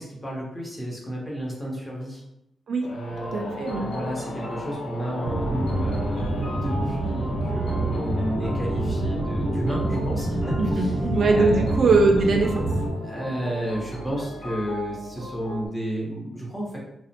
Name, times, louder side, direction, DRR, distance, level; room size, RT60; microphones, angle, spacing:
voice 1, 0.0-2.2 2.9-11.0 11.3-11.7 13.0-16.8, right 1 dB, 10° left, -3 dB, 0.8 m, -32 dB
sound 1, 2.8-13.1, left 3 dB, 60° left, 0.4 m, -41 dB
sound 2, 3.1-15.7, left 1 dB, 85° left, 1.0 m, -37 dB
voice 2, 3.3-3.9 10.6-12.6, right 3 dB, 70° right, 2 dB, 0.4 m, -21 dB
sound 3, 5.2-12.9, right 1 dB, 45° right, 0.8 m, -27 dB
2.4 x 2.1 x 2.8 m, 0.84 s
cardioid pair, 90°, 0 cm